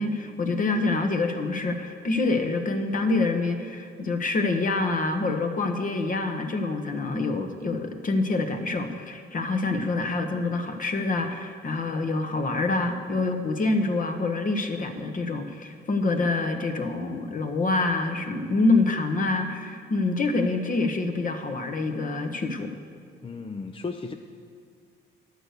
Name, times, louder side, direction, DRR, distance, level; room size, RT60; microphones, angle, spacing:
voice 1, 0.0-22.7, left 3 dB, 45° left, 6 dB, 1.2 m, -26 dB
voice 2, 23.2-24.1, left 4 dB, 25° left, 5 dB, 0.5 m, -34 dB
11.0 x 6.7 x 8.0 m, 2.3 s
cardioid pair, 90°, 20 cm